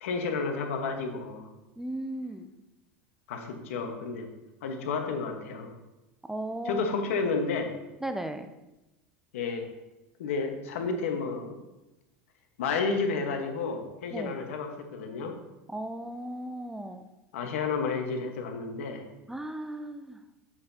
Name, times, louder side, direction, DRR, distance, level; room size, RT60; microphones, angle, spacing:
voice 1, 0.0-1.5 3.3-4.3 4.6-5.7 6.6-7.7 9.3-9.7 10.2-11.5 12.6-15.3 17.3-19.0, left 4 dB, 90° left, 4 dB, 1.3 m, -31 dB
voice 2, 1.8-2.5 6.3-6.9 8.0-8.5 14.1-14.4 15.7-17.1 19.3-20.2, right 1 dB, 5° right, 7 dB, 0.4 m, -36 dB
8.5 x 7.4 x 2.8 m, 1.0 s
supercardioid pair, 135°, 7 cm